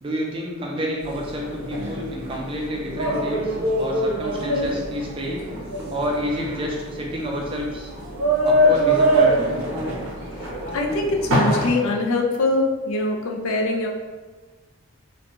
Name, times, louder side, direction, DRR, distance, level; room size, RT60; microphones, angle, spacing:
voice 1, 0.0-5.4 5.9-7.9 8.5-9.6, equal, 25° right, -1 dB, 0.4 m, -29 dB
sound 1, 1.0-11.7, right 1 dB, 80° right, 0.7 m, -23 dB
voice 2, 10.4-13.9, left 2 dB, 70° left, 1 dB, 0.4 m, -23 dB
2.5 x 2.2 x 2.9 m, 1.3 s
head